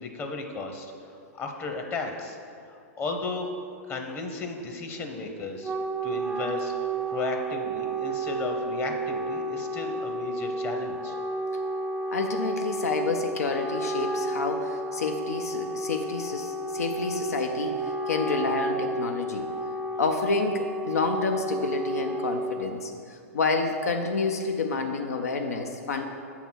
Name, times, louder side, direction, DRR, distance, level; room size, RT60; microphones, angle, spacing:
voice 1, 0.0-2.4 2.7-3.5 3.9-5.7 6.0-11.2, left 4 dB, 30° left, 3 dB, 0.8 m, -34 dB
Wind instrument woodwind instrument, 5.4-22.9, right 2 dB, 10° right, 0.4 m, -31 dB
voice 2, 12.1-19.5 20.0-26.0, left 3 dB, 80° left, 5 dB, 0.5 m, -29 dB
7.0 x 3.9 x 6.1 m, 2.4 s
hypercardioid pair, 110°, 8 cm